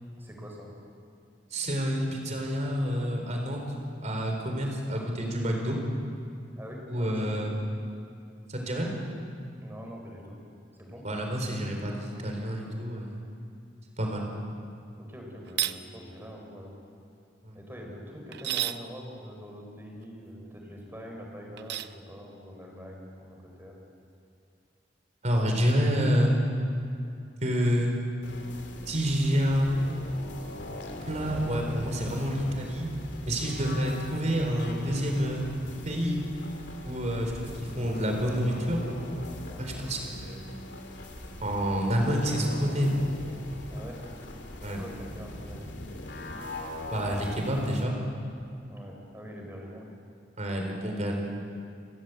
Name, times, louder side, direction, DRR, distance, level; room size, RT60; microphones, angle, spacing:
voice 1, 0.2-0.7 6.6-7.4 9.6-10.4 10.8-11.0 15.0-16.8 17.5-23.7 39.5-39.7 43.7-44.0 44.7-45.7 48.7-49.8, equal, 10° right, 0 dB, 4.5 m, -44 dB
voice 2, 1.5-3.6 4.0-5.8 6.9-7.5 8.5-8.9 11.0-13.2 14.0-14.3 17.5-17.6 25.2-26.4 27.4-27.9 28.9-29.7 31.1-32.9 33.3-35.4 35.8-36.2 36.8-37.5 37.8-38.8 39.6-40.4 41.4-42.9 44.6-44.8 46.9-48.0 50.4-51.2, equal, 40° right, 2 dB, 4.2 m, -28 dB
sound 1, 15.5-15.8 18.3-18.8 21.6-21.9, right 13 dB, 65° right, 0.7 m, -30 dB
sound 2, 28.2-47.8, left 1 dB, 70° left, 3.0 m, -41 dB
sound 3, 31.0-35.4, equal, 30° left, 5.5 m, -45 dB
29.5 x 14.0 x 8.2 m, 2.5 s
head